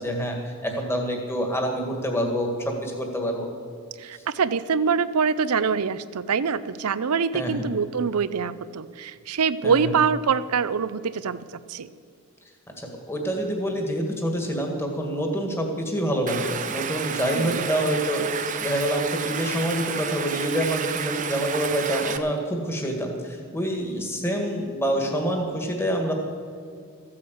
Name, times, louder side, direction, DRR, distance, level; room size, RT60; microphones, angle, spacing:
voice 1, 0.0-3.5 7.3-7.7 9.6-9.8 12.8-26.1, equal, 10° left, 2 dB, 1.8 m, -27 dB
voice 2, 4.0-11.4 11.7-11.9 17.3-17.6, right 6 dB, 90° right, 15 dB, 0.6 m, -24 dB
Stream, 16.3-22.2, right 7 dB, 35° right, 0.7 m, -31 dB
14.5 x 8.7 x 7.9 m, 2.4 s
head